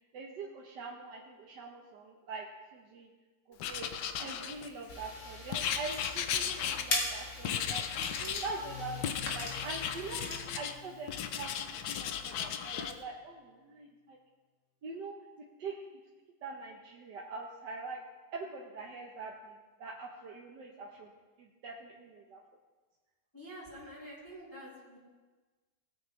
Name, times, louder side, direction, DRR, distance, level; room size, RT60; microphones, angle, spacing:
voice 1, 0.1-3.1 3.5-3.9 4.2-11.7 12.0-14.2 14.8-15.1 15.6-15.8 16.4-18.0 18.3-21.1 21.4-22.4, right 3 dB, 85° right, -2 dB, 1.7 m, -43 dB
Writing, 3.6-4.9 5.5-7.1 7.4-8.5 9.0-10.8 11.1-12.9, left 8 dB, 90° left, 1.3 m, -35 dB
sound 1, 4.9-10.4, left 2 dB, 70° left, 2.5 m, -40 dB
voice 2, 8.0-8.4 10.1-10.4 23.3-25.0, right 1 dB, 10° left, -9 dB, 2.8 m, -47 dB
Marimba xylophone, 8.6-12.5, left 8 dB, 35° left, 2.8 m, -50 dB
18.5 x 8.6 x 3.2 m, 1.3 s
omnidirectional pair, 1.8 m